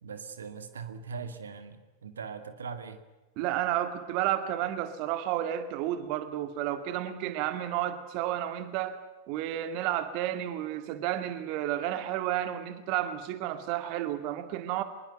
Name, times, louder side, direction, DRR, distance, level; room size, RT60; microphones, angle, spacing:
voice 1, 0.0-3.0, right 5 dB, 70° right, 10 dB, 2.3 m, -40 dB
voice 2, 3.4-9.0 9.3-14.8, right 12 dB, 45° right, 11 dB, 2.1 m, -31 dB
24.5 x 22.0 x 9.3 m, 1.1 s
figure-of-eight pair, 90°, 0 cm